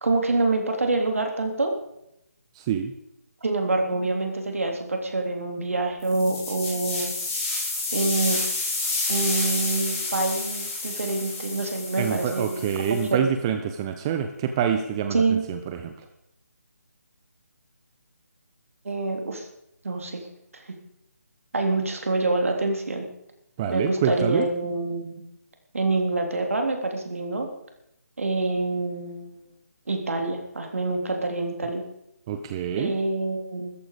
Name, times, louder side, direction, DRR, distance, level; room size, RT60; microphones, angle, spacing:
voice 1, 0.0-1.7 3.4-7.1 7.9-8.4 9.1-13.2 15.1-15.4 18.9-19.5 19.8-20.3 20.5-20.6 21.5-23.1 23.7-25.2 25.7-27.5 28.2-29.5 29.9-31.8 32.8-33.7, right 2 dB, 55° right, 4 dB, 3.5 m, -26 dB
voice 2, 2.5-2.9 12.0-15.9 23.6-24.5 32.3-32.9, right 8 dB, 20° right, 7 dB, 0.7 m, -26 dB
sound 1, 6.0-13.1, left 3 dB, 15° left, 6.3 m, -30 dB
15.5 x 14.0 x 5.1 m, 0.80 s
figure-of-eight pair, 150°, 9 cm